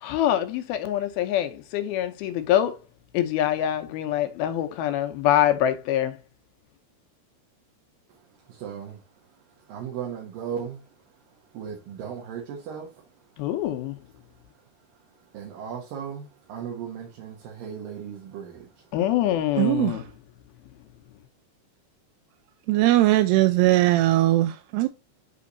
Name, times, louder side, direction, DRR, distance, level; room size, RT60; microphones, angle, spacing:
voice 1, 0.0-2.8 3.1-6.2 13.4-14.0 18.9-20.1, left 11 dB, 75° left, 2.4 m, -24 dB
voice 2, 8.6-9.0 9.7-10.8 11.5-12.9 15.3-18.6, right 8 dB, 65° right, 2.7 m, -36 dB
voice 3, 19.6-20.0 22.7-24.9, right 16 dB, 85° right, 2.6 m, -20 dB
8.4 x 3.4 x 3.9 m
omnidirectional pair, 4.8 m